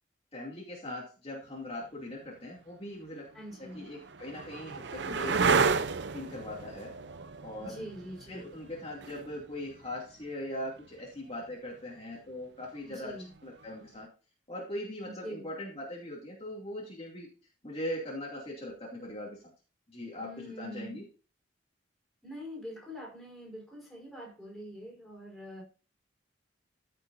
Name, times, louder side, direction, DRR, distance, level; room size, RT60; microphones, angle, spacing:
voice 1, 0.3-3.3 3.6-5.7 6.1-6.9 7.4-7.9 8.3-14.1 14.5-17.3 17.6-19.5 19.9-21.0, left 1 dB, 30° left, -4 dB, 2.7 m, -40 dB
sound 1, 2.2-2.3 3.2-10.8 13.1-13.7, right 5 dB, 65° right, 0.6 m, -32 dB
voice 2, 3.3-3.9 7.6-8.5 12.9-13.3 15.0-15.5 20.2-21.0 22.2-25.6, equal, ahead, -3 dB, 5.0 m, -44 dB
15.0 x 6.7 x 2.7 m, 0.35 s
head